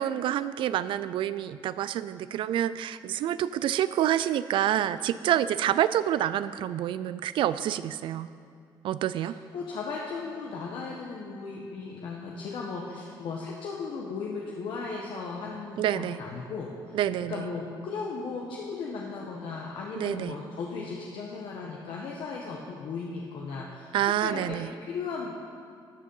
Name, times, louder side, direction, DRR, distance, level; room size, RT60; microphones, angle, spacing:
voice 1, 0.0-8.3 8.8-9.4 15.8-16.2 16.9-17.4 20.0-20.3 23.9-24.7, right 11 dB, 70° right, 14 dB, 0.4 m, -27 dB
voice 2, 9.2-17.0 17.3-25.3, left 4 dB, 65° left, -2 dB, 1.1 m, -36 dB
13.5 x 6.4 x 5.4 m, 2.3 s
cardioid pair, 125°, 9 cm